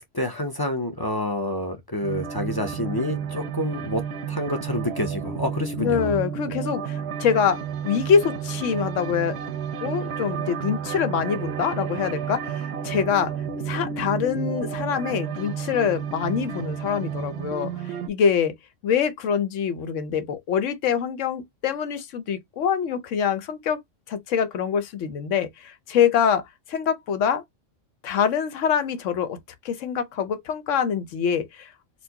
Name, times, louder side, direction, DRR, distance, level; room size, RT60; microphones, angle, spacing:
voice 1, 0.0-4.0 4.3-6.2, left 1 dB, 30° left, 0.4 m, -28 dB
sound 1, 2.0-18.1, right 7 dB, 70° right, 0.8 m, -31 dB
voice 2, 5.8-7.6 7.8-9.4 9.8-13.3 13.7-18.5 18.8-23.8 24.1-26.4 26.7-27.4 28.0-29.4 29.6-31.7, left 7 dB, 75° left, 1.0 m, -24 dB
4.3 x 2.1 x 2.8 m
omnidirectional pair, 1.3 m